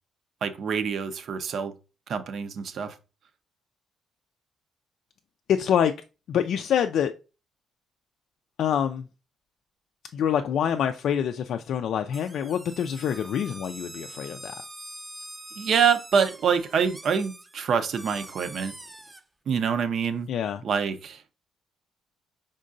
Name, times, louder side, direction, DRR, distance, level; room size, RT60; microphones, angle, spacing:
voice 1, 0.4-1.7 2.1-2.9 15.6-18.7 19.5-20.3 20.6-21.2, right 6 dB, 60° right, 0.6 m, -26 dB
voice 2, 5.5-5.9 6.3-7.1 8.6-9.0 10.1-14.5 20.3-20.6, left 8 dB, 70° left, 0.3 m, -26 dB
sound 1, 12.1-19.2, right 1 dB, 15° right, 0.5 m, -44 dB
5.3 x 3.6 x 2.5 m
cardioid pair, 90°, 0 cm